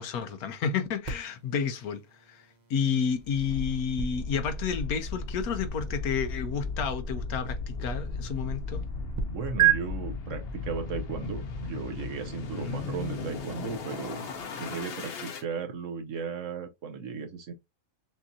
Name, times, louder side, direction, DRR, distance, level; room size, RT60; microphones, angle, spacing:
voice 1, 0.0-2.0 2.3-2.4 2.7-8.8 12.5-13.3, left 6 dB, 75° left, 1.2 m, -31 dB
sound 1, 1.0-9.2 9.6-9.7, right 10 dB, 40° right, 0.7 m, -33 dB
sound 2, 3.2-15.4, left 4 dB, 50° left, 0.8 m, -37 dB
voice 2, 9.3-14.2 14.6-17.5, right 5 dB, 60° right, 0.9 m, -36 dB
6.1 x 2.6 x 2.7 m
omnidirectional pair, 1.6 m